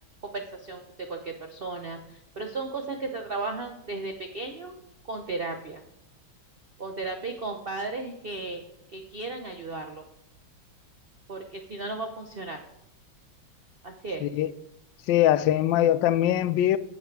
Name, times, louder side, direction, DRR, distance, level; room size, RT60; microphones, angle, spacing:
voice 1, 0.2-4.7 5.1-5.8 6.8-8.6 8.9-10.0 11.3-12.6 13.8-14.2, right 3 dB, 90° right, 0.5 m, -35 dB
voice 2, 15.1-16.8, left 12 dB, 75° left, 1.2 m, -22 dB
9.9 x 8.5 x 4.6 m
omnidirectional pair, 2.2 m